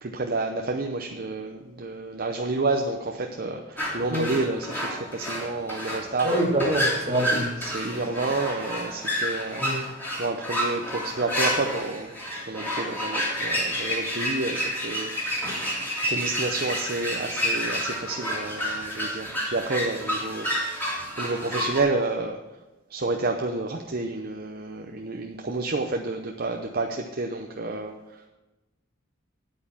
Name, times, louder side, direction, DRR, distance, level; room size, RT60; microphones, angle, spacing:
voice 1, 0.0-6.3 7.3-9.8 10.1-12.1 12.5-15.7 16.1-20.9 21.2-22.4 22.9-28.3, right 3 dB, 50° right, 3 dB, 0.7 m, -30 dB
sound 1, 3.8-21.8, equal, 10° left, 2.8 m, -29 dB
voice 2, 6.2-7.5 9.6-9.8, right 1 dB, 35° right, 0 dB, 1.9 m, -25 dB
9.5 x 8.5 x 5.8 m, 1.1 s
head